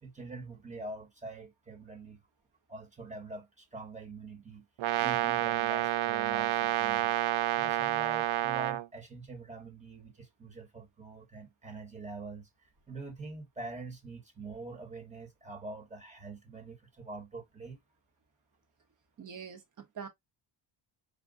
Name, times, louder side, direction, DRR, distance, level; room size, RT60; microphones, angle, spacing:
voice 1, 0.0-2.2 2.7-4.7 5.0-7.1 7.6-17.8, right 3 dB, 15° right, 1.2 m, -44 dB
Brass instrument, 4.8-8.9, right 13 dB, 70° right, 0.5 m, -29 dB
voice 2, 19.2-20.1, right 7 dB, 35° right, 1.2 m, -44 dB
5.2 x 2.3 x 3.7 m
cardioid pair, 145°, 50 cm